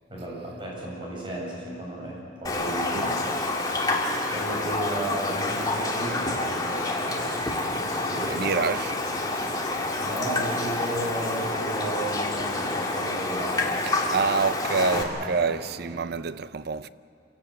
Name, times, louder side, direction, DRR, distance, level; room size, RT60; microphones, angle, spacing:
voice 1, 0.1-3.2 4.3-8.5 9.5-13.8 15.2-15.5 15.9-16.0, right 1 dB, 25° right, 7.1 m, -34 dB
Raindrop, 2.4-15.0, left 2 dB, 20° left, 2.2 m, -28 dB
voice 2, 8.3-8.9 13.8-16.9, right 5 dB, 55° right, 0.5 m, -27 dB
26.0 x 16.5 x 8.4 m
head